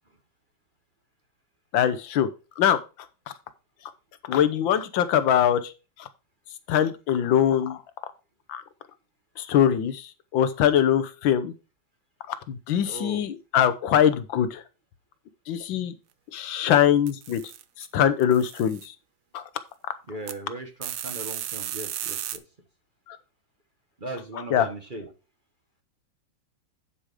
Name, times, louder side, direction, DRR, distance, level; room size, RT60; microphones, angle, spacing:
voice 1, 1.7-2.3 2.6-2.8 4.3-5.6 6.7-7.8 8.5-8.6 9.4-10.0 10.3-11.5 12.5-14.6 15.5-15.9 16.3-17.4 17.9-18.8 19.3-19.4 24.5-24.7, left 9 dB, 75° left, 13 dB, 1.5 m, -22 dB
voice 2, 12.8-13.2 20.1-22.4 24.0-25.1, right 1 dB, 30° right, 4 dB, 1.4 m, -38 dB
sound 1, 17.1-17.9 18.2-18.9 20.3-20.4 20.8-22.4, right 11 dB, 65° right, 1.1 m, -34 dB
10.0 x 5.0 x 4.9 m, 0.32 s
omnidirectional pair, 2.1 m